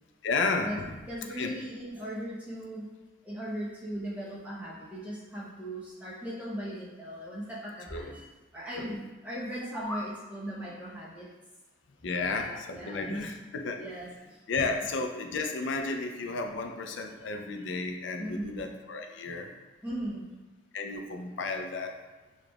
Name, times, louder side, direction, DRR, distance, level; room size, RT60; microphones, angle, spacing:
voice 1, 0.2-1.0 1.4-1.6 7.9-8.1 8.8-9.0 12.0-13.8 14.5-19.5 20.7-22.0, left 3 dB, 70° left, 4 dB, 0.4 m, -33 dB
voice 2, 1.1-2.9 3.2-8.2 8.5-11.3 12.2-13.2 13.8-14.7 18.2-18.6 19.8-20.3, right 1 dB, 10° right, -8 dB, 1.0 m, -38 dB
sound 1, 9.4-10.1, left 1 dB, 10° left, 0.3 m, -38 dB
4.9 x 3.1 x 2.3 m, 1.3 s
head